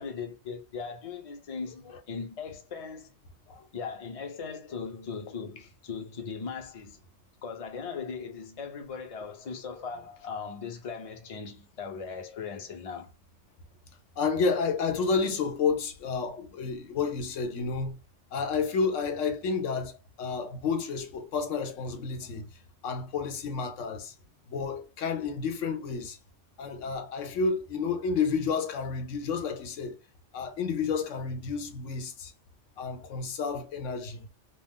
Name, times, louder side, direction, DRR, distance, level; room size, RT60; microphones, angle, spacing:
voice 1, 0.0-3.1 3.7-7.0 7.4-13.1, left 5 dB, 40° left, 0.6 m, -39 dB
voice 2, 14.2-18.0 18.3-22.5 22.8-24.1 24.5-26.2 26.6-30.0 30.3-32.3 32.8-34.3, left 5 dB, 85° left, 1.0 m, -30 dB
2.4 x 2.3 x 3.5 m
omnidirectional pair, 1.2 m